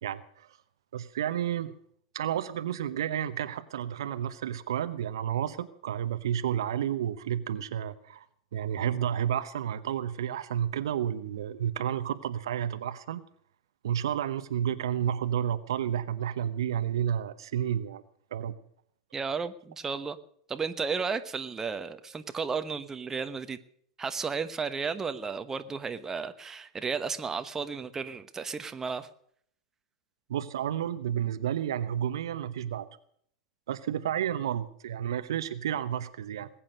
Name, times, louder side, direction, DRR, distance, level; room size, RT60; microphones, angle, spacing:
voice 1, 0.0-0.5 0.9-1.7 2.1-8.3 8.5-13.2 13.8-18.0 18.3-18.5 30.3-32.9 33.7-36.5, right 10 dB, 70° right, 12 dB, 0.9 m, -31 dB
voice 2, 19.1-20.2 20.5-23.6 24.0-29.1, right 5 dB, 20° right, 9 dB, 1.1 m, -33 dB
20.5 x 8.9 x 6.5 m, 0.64 s
figure-of-eight pair, 90°, 3 cm